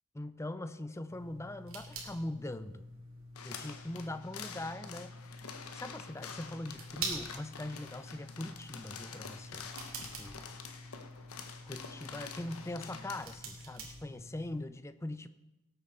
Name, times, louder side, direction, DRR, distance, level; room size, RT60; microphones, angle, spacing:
voice 1, 0.1-2.9 3.4-5.5 5.7-9.7 10.0-10.4 11.7-15.3, left 1 dB, 10° left, 13 dB, 0.4 m, -41 dB
sound 1, 1.1-14.6, right 2 dB, 65° right, 2.6 m, -46 dB
sound 2, 3.4-13.4, left 6 dB, 75° left, 1.0 m, -47 dB
18.0 x 8.4 x 4.1 m, 1.0 s
head